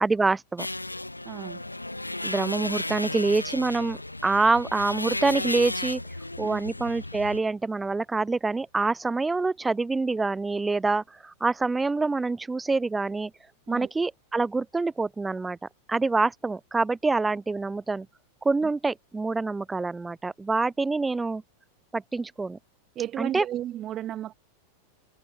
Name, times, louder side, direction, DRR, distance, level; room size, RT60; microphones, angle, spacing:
voice 1, 0.0-0.7 2.2-6.0 6.4-13.3 13.7-15.6 15.9-18.1 18.4-21.4 21.9-22.6 23.2-23.5, right 3 dB, 10° right, 0.6 m, -26 dB
sound 1, 0.6-7.4, left 2 dB, 85° left, 0.4 m, -34 dB
voice 2, 1.2-1.6 6.4-6.6 13.7-13.9 23.0-24.3, right 12 dB, 30° right, 2.2 m, -33 dB
figure-of-eight pair, 90°, 0 cm